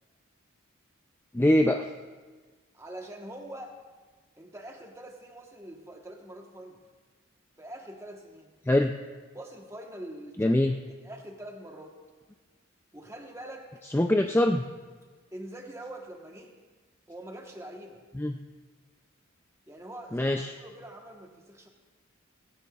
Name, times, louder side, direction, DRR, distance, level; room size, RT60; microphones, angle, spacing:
voice 1, 1.3-1.9 8.7-8.9 10.4-10.7 13.9-14.6 18.2-18.4 20.1-20.5, left 1 dB, 10° left, 4 dB, 0.3 m, -23 dB
voice 2, 2.7-3.8 4.4-6.8 7.6-8.5 9.3-12.0 12.9-13.7 15.3-16.5 17.1-18.0 19.7-21.7, right 1 dB, 15° right, 2 dB, 1.1 m, -44 dB
18.5 x 16.5 x 2.4 m, 1.4 s
head